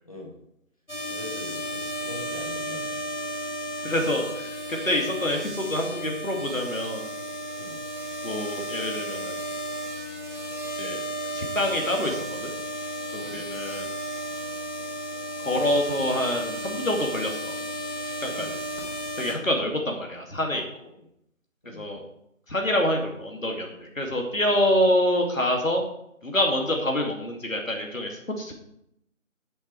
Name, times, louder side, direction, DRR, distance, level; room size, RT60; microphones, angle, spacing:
voice 1, 0.0-0.3 1.1-2.9 7.5-7.8 13.2-13.5 18.2-18.5 19.3-19.5 21.6-21.9, left 1 dB, 25° left, -3 dB, 2.6 m, -43 dB
sound 1, 0.9-19.3, equal, 55° left, 4.6 m, -33 dB
voice 2, 3.8-7.0 8.2-9.4 10.7-11.0 11.3-12.5 13.1-13.9 15.4-17.5 18.2-18.6 19.2-20.9 21.7-22.0 22.5-25.8 26.2-28.5, left 1 dB, 75° left, 1 dB, 2.5 m, -26 dB
10.5 x 7.5 x 4.7 m, 0.76 s
figure-of-eight pair, 170°, 40 cm